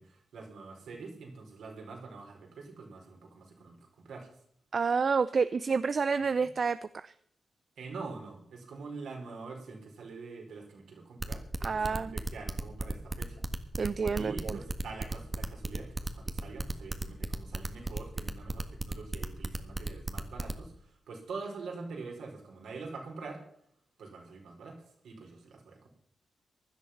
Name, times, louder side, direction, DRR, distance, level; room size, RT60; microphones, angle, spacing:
voice 1, 0.0-4.3 7.8-13.4 14.2-23.4 24.0-24.8 25.0-25.9, right 4 dB, 75° right, 1 dB, 4.3 m, -45 dB
voice 2, 4.7-7.1 11.6-12.2 13.8-14.6, right 5 dB, 55° right, 14 dB, 0.5 m, -29 dB
sound 1, 11.2-20.5, right 2 dB, 30° right, 1.6 m, -34 dB
16.5 x 10.5 x 5.8 m, 0.66 s
supercardioid pair, 45°, 0 cm